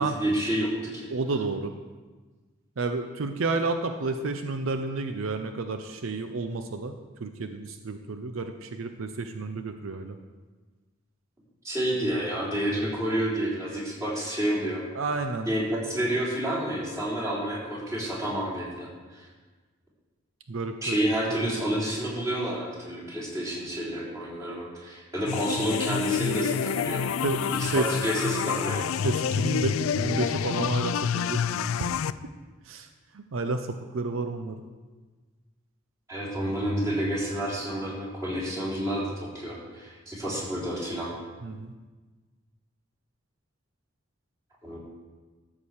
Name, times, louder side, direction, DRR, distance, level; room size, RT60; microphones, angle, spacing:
voice 1, 0.0-1.1 11.6-14.8 15.5-19.3 20.8-27.0 27.5-28.8 36.1-41.1 44.6-44.8, right 1 dB, 15° right, -8 dB, 3.6 m, -29 dB
voice 2, 1.1-1.7 2.8-6.9 7.2-10.1 14.9-15.5 20.5-21.0 21.3-21.6 26.4-26.5 27.2-27.9 29.0-31.9 32.7-32.9 33.1-34.6 41.4-41.7, right 3 dB, 80° right, 7 dB, 0.6 m, -31 dB
sound 1, 25.3-32.1, left 7 dB, 85° left, 0.3 m, -28 dB
13.0 x 4.8 x 7.2 m, 1.3 s
head